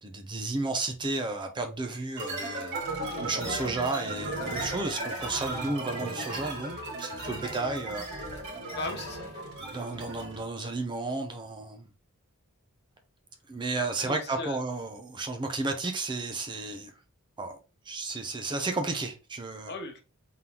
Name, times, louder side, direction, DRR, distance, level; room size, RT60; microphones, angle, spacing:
voice 1, 0.0-2.8 3.2-8.1 9.7-11.9 13.5-16.9 17.4-17.6 17.9-19.7, right 3 dB, 20° right, 0.6 m, -33 dB
sound 1, 2.2-10.5, right 2 dB, 50° right, 2.3 m, -36 dB
voice 2, 8.7-9.5 13.8-14.6 19.6-20.0, left 2 dB, 50° left, 0.8 m, -38 dB
3.8 x 3.6 x 2.9 m
head